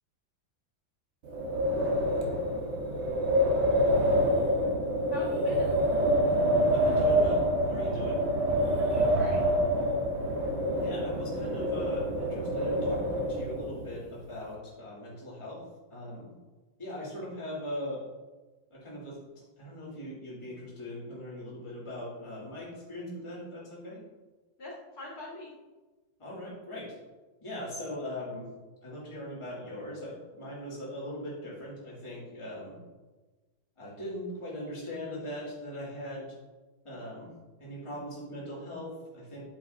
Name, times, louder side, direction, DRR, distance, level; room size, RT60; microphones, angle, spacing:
Wind, 1.2-13.9, equal, 60° right, 1.7 m, -27 dB
voice 1, 5.1-5.8 8.8-9.4 24.6-25.5, left 1 dB, 50° left, -7 dB, 2.3 m, -43 dB
voice 2, 6.7-7.4 7.7-8.2 10.7-15.6 15.9-16.3 16.8-18.0 18.7-19.2 19.6-24.0 26.2-26.9 27.4-28.5 28.8-32.8 33.8-36.3 36.8-37.3 37.6-38.9 39.1-39.4, left 1 dB, 15° left, -7 dB, 2.2 m, -40 dB
9.3 x 6.9 x 2.6 m, 1.2 s
omnidirectional pair, 2.2 m